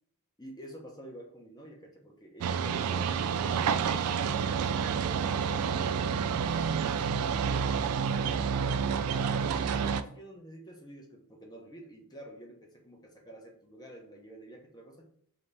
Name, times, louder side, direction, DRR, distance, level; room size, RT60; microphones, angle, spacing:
voice 1, 0.4-5.0 5.3-6.1 6.4-9.2 9.6-15.1, right 1 dB, 20° left, 0 dB, 0.8 m, -49 dB
sound 1, 2.4-10.0, right 6 dB, 75° right, 0.3 m, -29 dB
4.0 x 2.9 x 3.2 m, 0.65 s
head